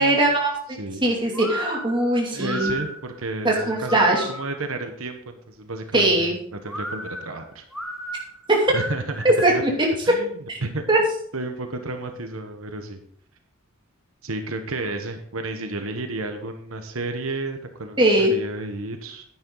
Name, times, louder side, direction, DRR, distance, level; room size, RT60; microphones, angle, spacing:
voice 1, 0.0-2.7 3.4-4.3 5.9-6.4 8.5-8.7 9.2-9.7 10.5-10.6 10.9-11.0 18.0-18.3, right 1 dB, 25° right, -1 dB, 2.4 m, -20 dB
sound 1, 1.3-4.7 6.7-9.8, right 1 dB, ahead, 1.1 m, -34 dB
voice 2, 2.3-7.6 8.7-9.2 9.5-9.6 10.1-10.3 10.6-10.8 11.3-13.0 14.2-19.2, right 2 dB, 85° right, 6 dB, 1.1 m, -32 dB
10.0 x 9.7 x 3.9 m, 0.62 s
head